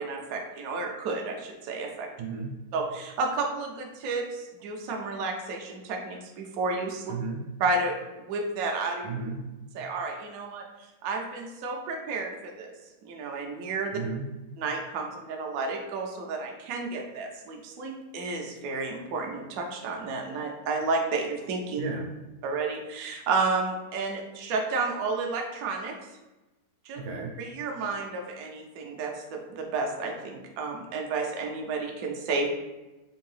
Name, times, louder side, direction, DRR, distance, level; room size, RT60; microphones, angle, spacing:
voice 1, 0.0-2.1 2.7-7.1 7.6-9.1 9.7-10.6 11.0-12.7 13.0-13.9 14.6-21.8 22.4-25.9 26.8-27.0 27.4-32.5, right 3 dB, 70° right, 2 dB, 1.0 m, -31 dB
voice 2, 2.2-2.5 7.1-7.4 9.0-9.4 13.9-14.3 21.8-22.1 27.0-27.3, right 4 dB, 85° right, 1 dB, 1.3 m, -33 dB
3.7 x 2.6 x 3.1 m, 1.1 s
omnidirectional pair, 1.7 m